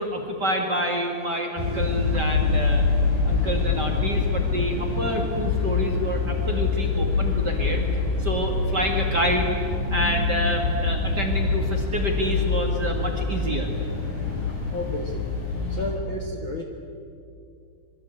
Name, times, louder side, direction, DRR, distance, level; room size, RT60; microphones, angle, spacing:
voice 1, 0.0-2.9 3.2-7.8 8.2-9.5 9.9-13.7 15.8-15.9, equal, 35° right, 2 dB, 1.8 m, -27 dB
sound 1, 1.6-15.9, left 4 dB, 40° left, 8.4 m, -25 dB
voice 2, 14.7-15.3 15.7-16.6, left 1 dB, 80° left, 2 dB, 1.1 m, -32 dB
26.0 x 23.5 x 8.7 m, 2.5 s
omnidirectional pair, 5.0 m